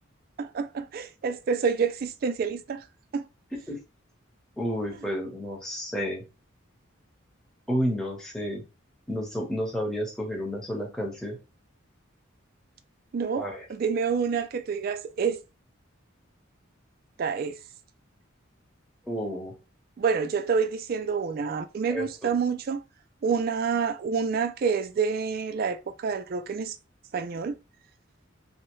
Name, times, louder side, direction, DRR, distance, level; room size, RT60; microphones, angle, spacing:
voice 1, 0.4-2.8 3.1-3.2 13.1-15.4 17.2-17.6 20.0-22.8 23.2-26.8 27.1-27.6, right 5 dB, 45° right, 0.3 m, -28 dB
voice 2, 4.6-6.2 7.7-8.6 9.1-11.4 13.3-13.6 19.1-19.5 21.9-22.3, equal, 5° left, 0.8 m, -31 dB
2.7 x 2.0 x 3.0 m
head